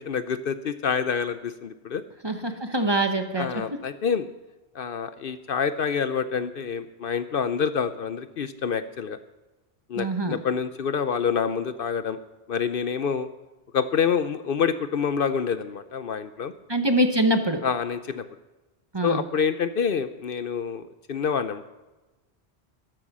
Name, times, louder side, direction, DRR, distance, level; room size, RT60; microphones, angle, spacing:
voice 1, 0.0-2.0 3.4-4.3 4.7-9.2 9.9-12.2 12.5-13.3 13.7-16.5 17.6-18.2 19.0-20.8 21.1-21.7, left 6 dB, 60° left, 12 dB, 0.8 m, -27 dB
voice 2, 2.2-3.5 10.0-10.4 16.7-17.6 18.9-19.2, right 1 dB, 25° right, 6 dB, 1.1 m, -24 dB
13.0 x 12.5 x 6.1 m, 1.1 s
omnidirectional pair, 1.1 m